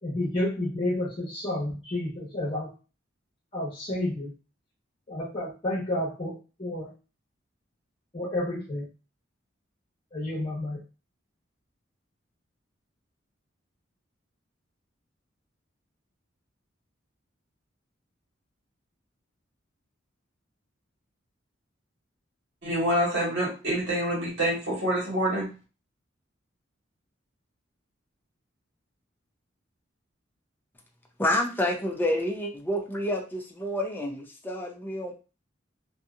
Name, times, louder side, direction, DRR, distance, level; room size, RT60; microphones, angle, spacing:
voice 1, 0.0-2.7 3.5-4.3 5.1-6.9 8.1-8.9 10.1-10.8, left 1 dB, 30° left, -5 dB, 1.0 m, -30 dB
voice 2, 22.6-25.5, right 1 dB, 65° right, -5 dB, 1.5 m, -26 dB
voice 3, 31.2-35.1, left 1 dB, 10° left, 1 dB, 0.5 m, -28 dB
2.7 x 2.7 x 2.4 m, 0.32 s
head